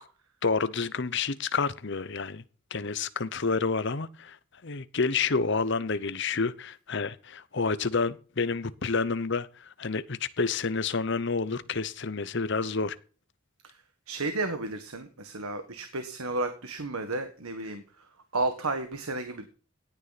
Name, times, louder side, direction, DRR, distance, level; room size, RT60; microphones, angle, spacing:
voice 1, 0.4-2.4 2.7-4.4 4.6-13.0, left 4 dB, 55° left, 0.8 m, -29 dB
voice 2, 14.1-17.8 18.3-19.5, right 2 dB, 90° right, 1.7 m, -32 dB
17.5 x 9.7 x 4.2 m
head